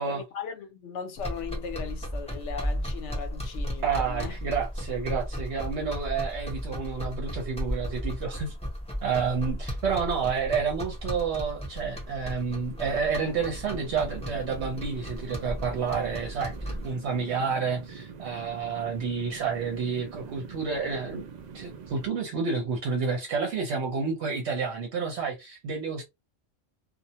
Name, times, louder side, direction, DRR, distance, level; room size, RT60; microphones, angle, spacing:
voice 1, 0.0-4.4, left 6 dB, 70° left, 1.0 m, -38 dB
sound 1, 1.2-16.9, equal, 5° left, 0.6 m, -35 dB
voice 2, 3.8-8.5 9.0-21.3 21.5-26.0, right 5 dB, 65° right, 0.9 m, -30 dB
sound 2, 11.6-22.1, right 6 dB, 85° right, 0.3 m, -45 dB
2.4 x 2.0 x 2.8 m
omnidirectional pair, 1.3 m